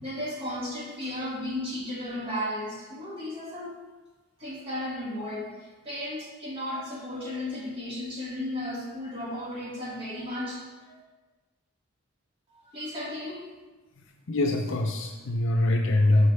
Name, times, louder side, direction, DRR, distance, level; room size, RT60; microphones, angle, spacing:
voice 1, 0.0-3.8 4.4-11.0 12.5-13.4, left 1 dB, 25° right, -5 dB, 2.3 m, -35 dB
voice 2, 14.3-16.3, left 1 dB, 60° left, 2 dB, 0.6 m, -23 dB
13.0 x 4.7 x 3.5 m, 1.2 s
head